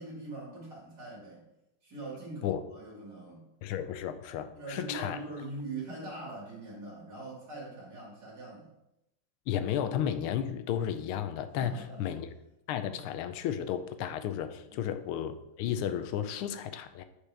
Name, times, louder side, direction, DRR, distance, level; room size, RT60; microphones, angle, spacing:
voice 1, 0.0-1.4 1.8-3.5 4.5-8.7 11.6-12.1 12.9-13.0 14.7-14.9, right 2 dB, 50° right, -4 dB, 2.4 m, -42 dB
voice 2, 3.6-5.2 9.5-12.3 12.7-17.0, left 9 dB, 80° left, 10 dB, 1.4 m, -33 dB
8.2 x 5.0 x 3.4 m, 0.86 s
omnidirectional pair, 2.4 m